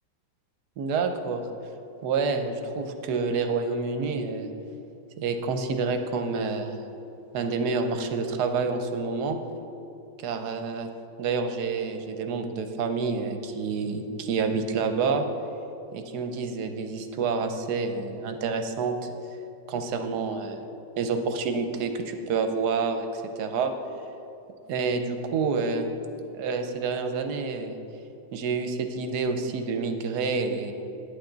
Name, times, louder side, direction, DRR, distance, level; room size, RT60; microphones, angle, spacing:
voice 1, 0.8-1.4 2.0-4.5 5.2-6.8 7.3-9.4 10.2-10.9 11.2-15.3 15.9-19.1 19.7-20.7 21.0-23.7 24.7-25.9 26.3-27.8 28.3-30.7, right 4 dB, 70° right, 6 dB, 1.2 m, -28 dB
9.8 x 8.3 x 3.9 m, 2.8 s
omnidirectional pair, 2.0 m